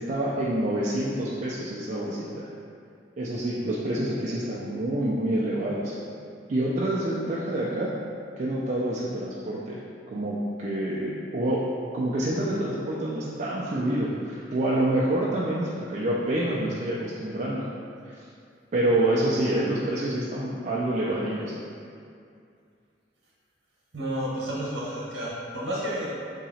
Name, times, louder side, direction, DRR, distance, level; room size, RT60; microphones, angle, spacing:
voice 1, 0.0-2.5 3.2-5.9 6.5-7.9 8.4-9.8 10.1-11.6 11.9-17.7 18.0-18.1 18.7-21.5, right 1 dB, 40° right, -7 dB, 0.3 m, -27 dB
voice 2, 23.9-26.2, equal, 70° right, -5 dB, 1.0 m, -31 dB
2.9 x 2.8 x 4.1 m, 2.4 s
head